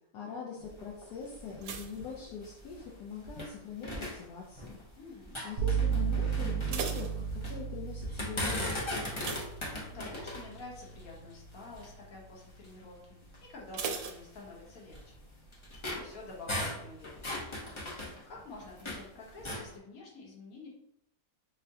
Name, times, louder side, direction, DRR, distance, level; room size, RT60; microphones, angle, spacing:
voice 1, 0.1-4.8 5.4-9.1, left 5 dB, 80° left, -4 dB, 1.2 m, -43 dB
sound 1, 0.6-3.5 3.8-4.9 5.2-7.6 8.0-12.0 12.6-12.7 13.2-13.4 14.1-19.1 19.4-19.7, left 1 dB, 45° left, 0.4 m, -39 dB
sound 2, 1.6-3.1 3.3-3.8 4.4-4.8 5.1-5.2 5.6-5.7 6.3-7.9 9.2-10.3 10.7-10.9 11.3-11.4 13.7-14.9 15.2-15.3, right 6 dB, 85° right, 1.2 m, -40 dB
voice 2, 4.9-5.4 9.4-9.6 9.9-15.2 15.8-20.7, left 3 dB, 60° left, -3 dB, 1.5 m, -49 dB
sound 3, 5.6-13.3, right 7 dB, 65° right, 0.8 m, -36 dB
6.2 x 2.1 x 2.7 m, 0.81 s
omnidirectional pair, 1.7 m